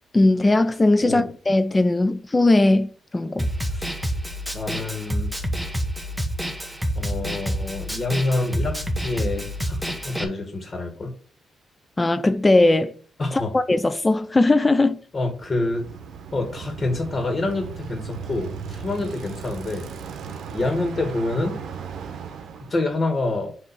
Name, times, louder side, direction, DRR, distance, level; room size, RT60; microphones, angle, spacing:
voice 1, 0.1-3.5 12.0-12.9 13.5-15.0, left 2 dB, 20° left, 0.6 m, -19 dB
Snare drum, 3.4-10.2, equal, ahead, 1.2 m, -28 dB
voice 2, 4.5-5.3 7.0-8.8 9.0-11.1 13.2-13.5 15.1-15.9 16.3-19.9 20.5-21.6 22.7-23.5, left 2 dB, 35° left, 2.1 m, -27 dB
Bicycle, 15.3-22.9, right 6 dB, 80° right, 1.0 m, -36 dB
7.2 x 3.4 x 6.1 m
cardioid pair, 90°, 0 cm